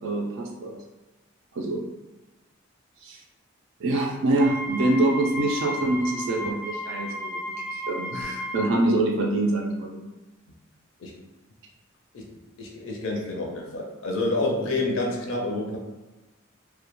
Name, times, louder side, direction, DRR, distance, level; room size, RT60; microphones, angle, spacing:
voice 1, 0.0-0.8 1.5-1.8 3.0-3.2 3.8-10.1, right 2 dB, 60° right, 0 dB, 0.3 m, -25 dB
Wind instrument woodwind instrument, 4.3-8.8, equal, 10° right, 0.5 m, -34 dB
voice 2, 12.6-15.8, left 2 dB, 65° left, -1 dB, 0.4 m, -28 dB
2.1 x 2.1 x 2.9 m, 1.1 s
head